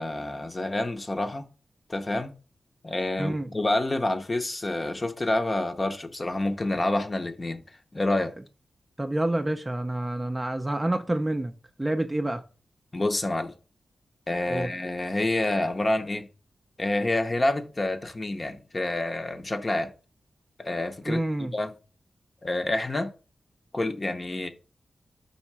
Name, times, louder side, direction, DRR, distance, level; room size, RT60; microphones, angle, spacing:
voice 1, 0.0-1.5 1.9-2.3 2.8-7.6 7.9-8.3 12.9-13.5 14.3-16.3 16.8-19.9 20.6-21.7 22.4-23.1 23.7-24.5, left 2 dB, 25° left, 0.8 m, -28 dB
voice 2, 3.2-3.5 9.0-11.5 11.8-12.4 14.5-14.7 21.1-21.5, right 1 dB, 15° right, 0.5 m, -28 dB
5.5 x 4.1 x 6.0 m
wide cardioid pair, 150°, 0 cm